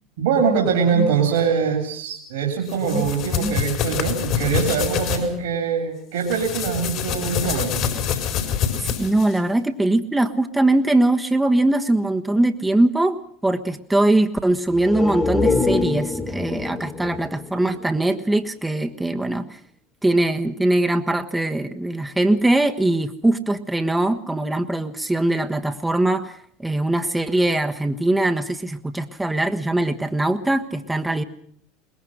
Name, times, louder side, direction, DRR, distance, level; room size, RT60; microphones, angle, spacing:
voice 1, 0.2-7.8, right 6 dB, 70° right, 2 dB, 3.4 m, -23 dB
sound 1, 2.7-5.2 6.2-9.4, left 8 dB, 55° left, 4.6 m, -26 dB
voice 2, 2.8-3.6 8.8-19.6 20.0-31.2, right 2 dB, 10° right, 5 dB, 1.3 m, -21 dB
sound 2, 14.7-18.4 18.8-18.9, left 4 dB, 25° left, 2.3 m, -25 dB
22.5 x 20.0 x 6.5 m, 0.64 s
hypercardioid pair, 75°, 0 cm